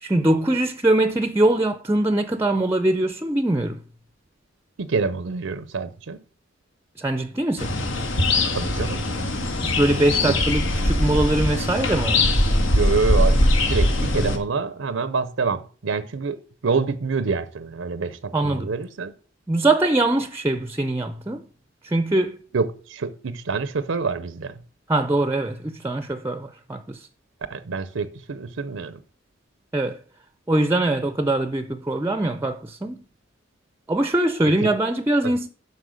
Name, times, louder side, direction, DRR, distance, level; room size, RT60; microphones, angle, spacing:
voice 1, 0.0-3.8 7.0-7.8 9.6-12.4 18.3-18.7 19.5-21.4 21.8-22.4 24.9-27.1 29.7-30.0 30.5-33.0 33.9-35.5, right 1 dB, 15° right, 0.5 m, -22 dB
voice 2, 4.8-6.2 8.5-9.0 10.2-10.3 12.7-19.1 22.5-24.6 27.5-29.0 34.4-34.7 35.2-35.3, right 4 dB, 90° right, 0.6 m, -27 dB
sound 1, 7.6-14.4, left 1 dB, 85° left, 1.6 m, -21 dB
7.8 x 5.7 x 6.2 m
head